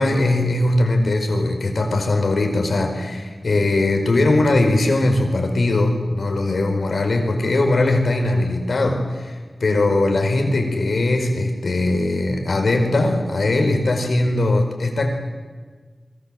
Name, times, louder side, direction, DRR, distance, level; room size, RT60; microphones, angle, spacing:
voice 1, 0.0-15.1, left 2 dB, 70° left, 4 dB, 4.8 m, -20 dB
27.5 x 23.0 x 7.8 m, 1.5 s
wide cardioid pair, 95°, 0 cm